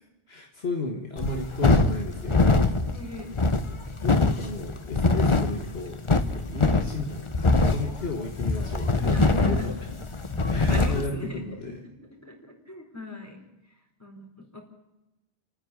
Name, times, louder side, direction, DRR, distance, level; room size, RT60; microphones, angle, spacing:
voice 1, 0.3-2.7 4.0-6.0 6.3-9.7 10.5-11.8, left 3 dB, 75° left, 2 dB, 1.9 m, -34 dB
sound 1, 1.2-11.1, left 3 dB, 30° left, 1.0 m, -23 dB
voice 2, 2.9-3.4 9.0-9.7 10.4-12.0 12.2-13.4 13.7-14.6, left 1 dB, 15° left, 1 dB, 4.1 m, -39 dB
29.0 x 9.9 x 9.7 m, 1.0 s
omnidirectional pair, 1.1 m